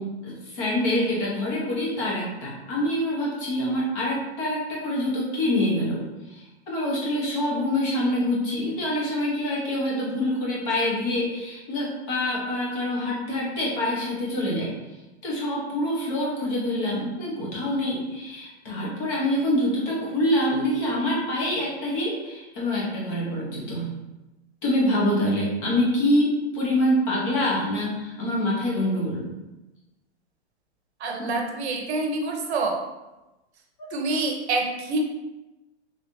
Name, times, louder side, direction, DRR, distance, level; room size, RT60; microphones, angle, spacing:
voice 1, 0.0-6.0 6.3-14.7 15.2-23.9 24.6-29.2 31.2-31.3 33.8-33.9, left 1 dB, 30° left, -5 dB, 1.0 m, -26 dB
voice 2, 31.0-32.8 33.9-35.0, right 3 dB, 70° right, 2 dB, 0.8 m, -27 dB
3.5 x 3.5 x 2.7 m, 1.0 s
hypercardioid pair, 165°, 34 cm